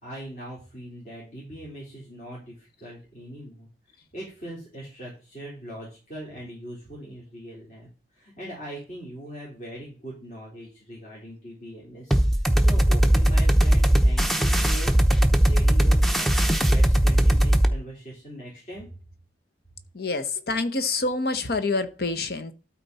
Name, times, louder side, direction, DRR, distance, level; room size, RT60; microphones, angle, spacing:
voice 1, 0.0-3.7 4.1-7.9 8.1-12.1 12.6-15.0 15.4-18.9, right 1 dB, 45° left, 3.8 m, -41 dB
sound 1, 12.1-17.7, right 1 dB, ahead, 0.7 m, -19 dB
voice 2, 19.9-22.5, left 3 dB, 60° left, 0.9 m, -27 dB
12.5 x 4.4 x 4.1 m
head